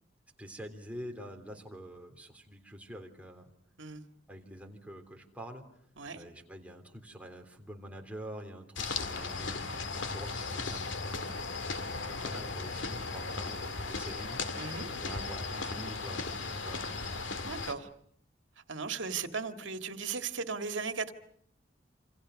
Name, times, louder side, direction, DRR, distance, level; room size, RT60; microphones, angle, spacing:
voice 1, 0.4-3.5 4.3-5.6 6.1-11.5 12.0-17.0, equal, 5° right, 3 dB, 3.4 m, -46 dB
sound 1, 8.8-17.7, left 4 dB, 85° left, 2.2 m, -36 dB
voice 2, 14.6-14.9 17.4-17.9 18.7-21.1, right 5 dB, 85° right, 7 dB, 1.9 m, -36 dB
28.0 x 26.5 x 6.4 m, 0.67 s
head